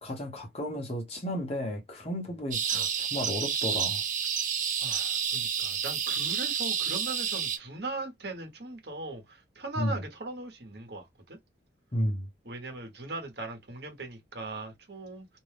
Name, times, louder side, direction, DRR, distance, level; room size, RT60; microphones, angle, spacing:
voice 1, 0.0-4.0 9.8-10.0 11.9-12.3, equal, 35° left, 0.9 m, -33 dB
sound 1, 2.5-7.6, right 7 dB, 45° right, 0.5 m, -30 dB
voice 2, 4.8-11.4 12.4-15.3, right 2 dB, 60° right, 1.0 m, -39 dB
2.6 x 2.2 x 3.3 m
head